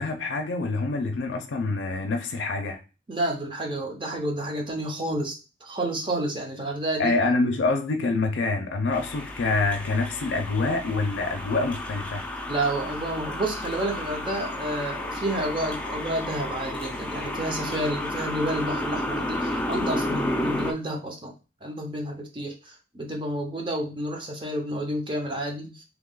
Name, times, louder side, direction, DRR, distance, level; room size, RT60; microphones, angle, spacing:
voice 1, 0.0-2.8 7.0-12.2, left 3 dB, 70° left, 0.5 m, -26 dB
voice 2, 3.1-7.2 12.5-21.3 21.6-22.5 22.9-25.8, right 1 dB, 25° right, 0.6 m, -30 dB
sound 1, 8.9-20.7, left 1 dB, 5° left, 0.3 m, -32 dB
2.9 x 2.3 x 3.8 m
head